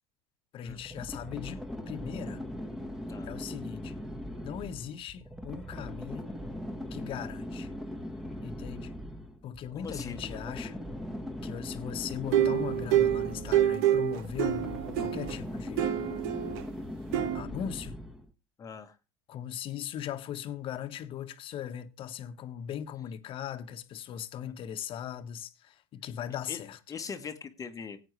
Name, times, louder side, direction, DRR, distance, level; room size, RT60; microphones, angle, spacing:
voice 1, 0.5-2.4 3.2-3.9 4.4-6.3 6.9-7.7 8.4-8.9 9.4-10.8 11.4-15.9 17.3-18.0 19.3-26.8, left 9 dB, 45° left, 1.3 m, -39 dB
sound 1, 0.7-18.3, left 1 dB, ahead, 1.5 m, -40 dB
voice 2, 9.7-10.2 18.6-19.0 24.4-24.5 26.5-26.6 26.9-28.0, left 6 dB, 25° left, 1.3 m, -41 dB
sound 2, 12.3-15.4 15.8-16.6 17.1-17.4, right 11 dB, 75° right, 1.3 m, -27 dB
17.5 x 8.7 x 3.2 m
supercardioid pair, 115°, 12 cm